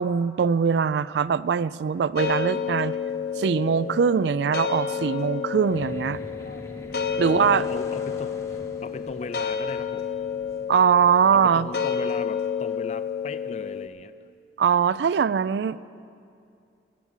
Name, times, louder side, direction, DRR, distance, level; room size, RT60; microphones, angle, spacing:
voice 1, 0.0-3.0 3.4-6.2 7.2-7.6 10.7-11.7 14.6-15.9, right 6 dB, 80° right, 18 dB, 0.3 m, -22 dB
sound 1, 2.2-13.9, left 7 dB, 60° left, 0.9 m, -30 dB
sound 2, 5.6-12.2, left 1 dB, 15° left, 0.8 m, -45 dB
voice 2, 7.3-10.1 11.3-14.1, left 3 dB, 40° left, 14 dB, 0.4 m, -38 dB
21.5 x 7.4 x 7.2 m, 2.4 s
head